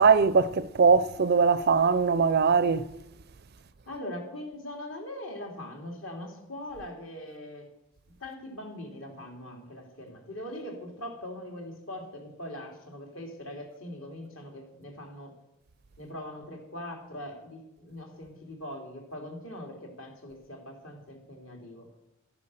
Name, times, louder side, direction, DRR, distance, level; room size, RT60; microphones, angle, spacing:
voice 1, 0.0-2.8, right 5 dB, 45° right, 0.4 m, -21 dB
voice 2, 3.9-7.7 8.2-15.3 16.0-21.9, left 1 dB, 65° left, 3.1 m, -41 dB
13.0 x 9.7 x 6.4 m
head